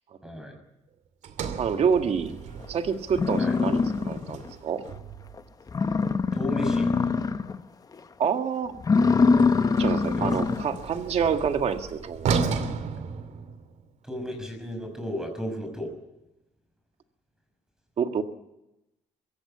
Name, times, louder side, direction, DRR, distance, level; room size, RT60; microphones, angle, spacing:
voice 1, 0.2-0.6 3.4-3.6 6.3-6.9 10.2-10.3 14.0-15.9, left 1 dB, 5° right, 5 dB, 5.9 m, -33 dB
Sliding door, 1.2-5.5 9.0-13.9, right 5 dB, 70° right, 2.5 m, -34 dB
voice 2, 1.6-2.4 2.7-3.8 4.0-4.8 8.2-8.7 9.8-12.5 18.0-18.2, right 7 dB, 55° right, 7 dB, 1.8 m, -27 dB
sound 1, 2.6-2.7 3.1-4.5 4.9-5.0 5.4-5.5 5.7-7.6 7.9-8.3 8.7-10.8, left 4 dB, 30° left, 1.0 m, -23 dB
23.5 x 16.0 x 8.6 m, 0.94 s
cardioid pair, 110°, 12 cm